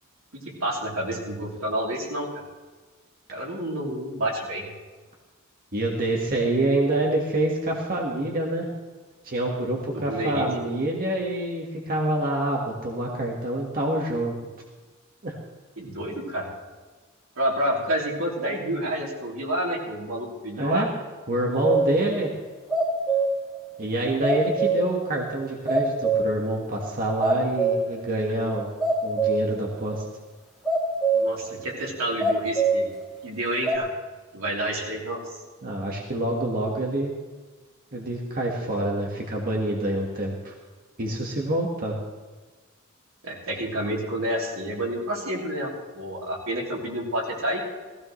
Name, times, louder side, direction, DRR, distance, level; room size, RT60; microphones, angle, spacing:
voice 1, 0.6-2.3 3.3-4.7 9.9-10.5 15.8-16.5 17.3-20.9 31.1-32.9 33.2-33.9 34.3-35.2 43.2-47.6, right 1 dB, 85° right, -3 dB, 3.4 m, -29 dB
voice 2, 5.7-8.7 9.2-14.3 15.2-15.4 20.6-20.9 21.3-22.3 23.8-28.7 29.0-30.0 35.6-37.1 37.9-40.5 41.0-41.9, right 1 dB, 45° right, -2 dB, 1.6 m, -26 dB
sound 1, 21.6-22.0 22.5-23.5 23.8-23.9 24.2-25.0 25.4-25.5 25.7-26.5 26.8-26.9 27.2-28.0 28.3-28.5 28.8-29.6 29.9-30.0 30.6-31.4 32.2-32.8 33.7-33.8, right 3 dB, ahead, 2.5 m, -23 dB
17.0 x 16.0 x 3.2 m, 1.3 s
head